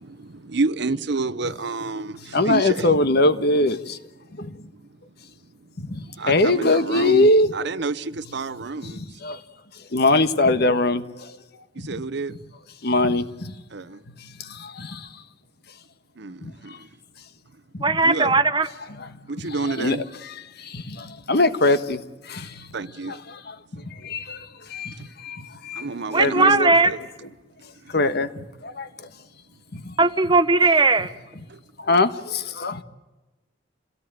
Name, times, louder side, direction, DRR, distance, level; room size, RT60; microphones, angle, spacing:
voice 1, 0.0-2.9 6.2-9.0 11.8-12.3 13.7-14.0 16.2-16.9 18.0-18.3 19.3-20.0 22.7-23.1 23.8-23.9 25.0-25.1 25.7-26.5 26.9-27.0 31.5-31.6, right 3 dB, 60° right, 0.8 m, -29 dB
voice 2, 2.3-4.0 4.3-4.5 5.8-7.5 8.8-9.4 9.9-11.4 11.9-12.0 12.3-12.4 12.8-13.5 14.4-15.1 16.4-16.8 17.7-18.4 19.0-22.7 23.1-23.5 24.0-25.8 26.2-26.9 27.9-28.3 28.6-28.9 29.7-29.9 30.2-30.3 31.0-31.1 31.8-32.8, left 2 dB, 60° left, 1.5 m, -23 dB
voice 3, 17.8-18.7 26.1-26.9 30.0-31.1, right 3 dB, 25° right, 1.2 m, -18 dB
28.0 x 17.5 x 9.1 m
head